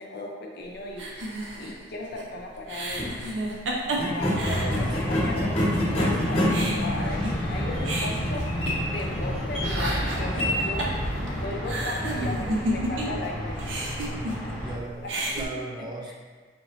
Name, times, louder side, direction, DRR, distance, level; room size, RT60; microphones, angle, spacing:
voice 1, 0.0-3.4 4.0-8.4 8.9-13.6 15.0-15.3 16.1-16.2, left 2 dB, 60° left, 0 dB, 0.6 m, -36 dB
sound 1, 1.0-5.4 5.7-5.8 6.2-9.3 9.5-13.3 13.5-14.7 15.0-15.4, right 1 dB, 85° right, 0.6 m, -32 dB
sound 2, 2.9-3.1 3.9-11.4, left 1 dB, 35° left, 1.0 m, -28 dB
sound 3, 4.3-14.8, equal, 5° left, 0.8 m, -31 dB
voice 2, 4.4-5.3 5.7-6.7 14.1-16.2, right 2 dB, 25° right, -1 dB, 0.5 m, -39 dB
4.3 x 3.0 x 2.6 m, 1.5 s
head